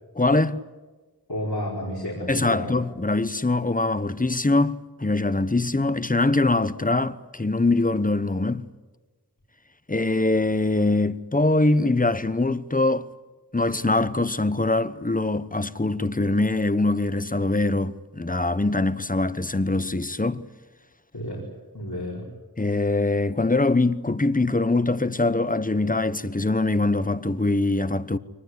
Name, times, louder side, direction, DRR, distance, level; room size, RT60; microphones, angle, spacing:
voice 1, 0.2-0.6 2.3-8.7 9.9-13.1 13.5-20.5 22.6-28.2, left 2 dB, 20° left, 1.0 m, -23 dB
voice 2, 1.3-2.8 21.1-21.5 21.7-22.3, left 1 dB, 85° left, 4.9 m, -31 dB
24.0 x 20.0 x 9.9 m
wide cardioid pair, 40°, 37 cm